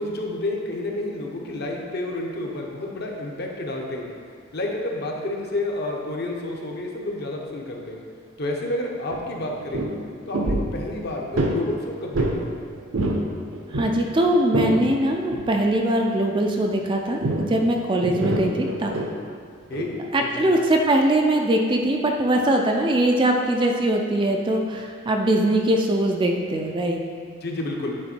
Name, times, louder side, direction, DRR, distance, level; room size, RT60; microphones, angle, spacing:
voice 1, 0.0-4.1 4.5-8.0 8.4-9.9 10.3-12.5 19.7-20.1 20.4-20.5 27.4-27.9, left 2 dB, 50° left, 0 dB, 0.8 m, -30 dB
sound 1, 9.1-9.2 9.5-9.9 10.3-10.7 11.3-11.6 12.1-12.4 12.8-13.3 13.5-14.8 15.3-15.5 17.2-17.5 18.0-19.1 19.7-19.9, right 1 dB, 65° right, 0.7 m, -25 dB
voice 2, 13.7-18.9 20.1-27.0, right 1 dB, 25° right, 2 dB, 0.3 m, -21 dB
8.6 x 3.7 x 4.3 m, 2.1 s
head